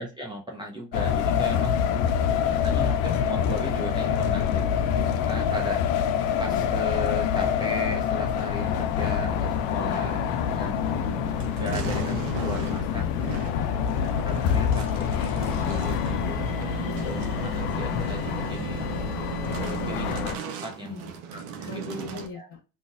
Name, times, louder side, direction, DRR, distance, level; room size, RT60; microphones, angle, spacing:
voice 1, 0.0-1.8 2.5-5.8 6.4-10.3 10.6-10.8 11.6-13.0 14.2-16.4 17.0-18.8 19.5-22.5, equal, 10° right, -2 dB, 0.8 m, -36 dB
sound 1, 0.9-20.4, left 8 dB, 60° left, 0.6 m, -26 dB
voice 2, 1.7-2.6 4.2-4.4 6.4-6.6 9.7-10.4 12.7-13.5 14.3-14.7 16.8-17.1 19.6-19.8 20.8-21.2 21.6-22.6, left 4 dB, 40° left, -1 dB, 1.3 m, -42 dB
sound 2, 8.7-22.3, right 7 dB, 65° right, 0.8 m, -37 dB
3.8 x 2.7 x 2.4 m, 0.31 s
hypercardioid pair, 65°, 47 cm